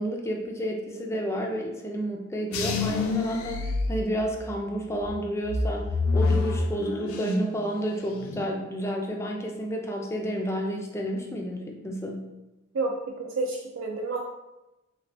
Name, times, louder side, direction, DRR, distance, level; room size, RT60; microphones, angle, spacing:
voice 1, 0.0-12.3, equal, 15° left, 0 dB, 0.4 m, -31 dB
sound 1, 2.5-4.6 5.0-7.6 7.9-8.5, left 3 dB, 90° left, 0.4 m, -27 dB
voice 2, 12.7-14.2, right 3 dB, 65° right, 1 dB, 0.3 m, -30 dB
3.3 x 3.1 x 2.6 m, 0.99 s
head